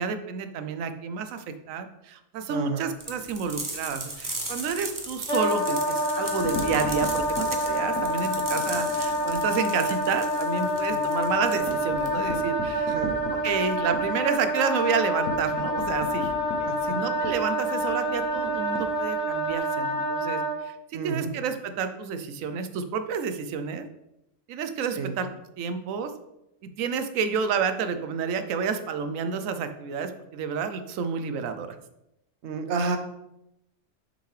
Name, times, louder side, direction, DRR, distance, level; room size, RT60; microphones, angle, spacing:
voice 1, 0.0-12.9 13.4-16.3 16.6-23.9 24.5-25.3 25.6-26.1 26.6-31.7, right 6 dB, 90° right, 9 dB, 1.0 m, -30 dB
voice 2, 2.5-2.9 10.9-11.1 12.9-13.1 16.7-17.0 20.9-21.3 24.9-25.2 32.4-33.0, right 4 dB, 65° right, 7 dB, 1.0 m, -30 dB
sound 1, 3.0-12.4, right 2 dB, 20° right, 0.6 m, -38 dB
Wind instrument woodwind instrument, 5.3-20.6, equal, 70° left, 2.1 m, -27 dB
sound 2, 6.2-9.4 9.8-10.0 10.3-10.4 10.7-19.6, left 1 dB, 85° left, 1.3 m, -39 dB
6.4 x 5.1 x 3.2 m, 0.86 s
omnidirectional pair, 1.3 m